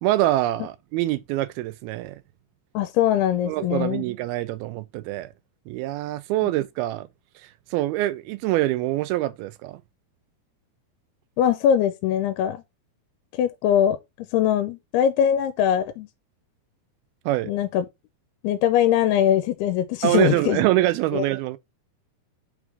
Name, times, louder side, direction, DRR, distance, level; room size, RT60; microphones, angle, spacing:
voice 1, 0.0-2.2 3.5-5.3 5.7-7.1 7.7-9.8 17.3-17.5 20.0-21.6, right 15 dB, 80° right, 2.3 m, -24 dB
voice 2, 2.7-4.0 6.4-6.5 11.4-12.6 13.3-14.0 14.3-16.1 17.5-17.9 18.4-20.6 21.1-21.2, left 10 dB, 85° left, 2.6 m, -22 dB
6.1 x 3.6 x 4.6 m
omnidirectional pair, 4.6 m